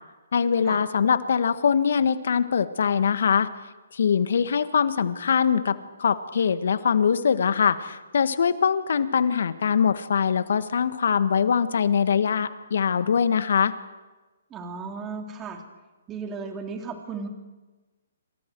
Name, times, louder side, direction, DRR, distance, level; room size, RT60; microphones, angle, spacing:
voice 1, 0.3-3.5 3.9-13.7, left 7 dB, 65° left, 12 dB, 1.6 m, -22 dB
voice 2, 14.5-15.6 16.1-17.3, right 5 dB, 20° right, 3 dB, 3.4 m, -35 dB
28.0 x 27.0 x 4.7 m, 1.2 s
hypercardioid pair, 135°, 0 cm